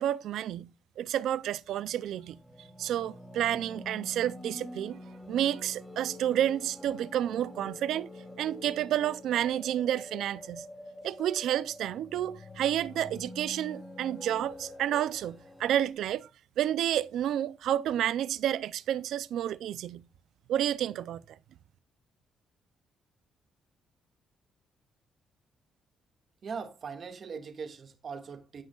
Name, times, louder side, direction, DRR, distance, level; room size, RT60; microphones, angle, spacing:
voice 1, 0.0-2.4 2.8-5.0 5.3-8.1 8.4-10.6 11.0-16.3 16.6-20.1 20.5-21.4, right 11 dB, 80° right, 0.5 m, -30 dB
sound 1, 1.6-15.9, left 1 dB, 10° left, 3.0 m, -46 dB
voice 2, 26.4-28.6, right 5 dB, 50° right, 1.9 m, -40 dB
17.0 x 6.2 x 2.4 m
cardioid pair, 90°, 0 cm